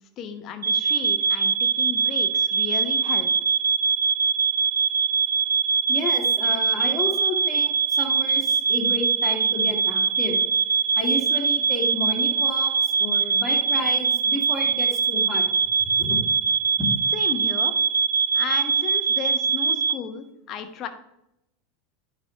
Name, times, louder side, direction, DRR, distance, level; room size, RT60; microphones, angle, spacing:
voice 1, 0.2-3.3 17.1-17.7 18.3-20.9, left 7 dB, 40° left, 7 dB, 1.0 m, -34 dB
sound 1, 0.6-19.9, right 6 dB, 80° right, 0.4 m, -22 dB
voice 2, 5.9-10.4 11.0-15.4 15.8-16.2 16.8-16.9, left 2 dB, 15° left, -4 dB, 2.4 m, -31 dB
10.5 x 4.2 x 3.2 m, 0.83 s
figure-of-eight pair, 85°, 0 cm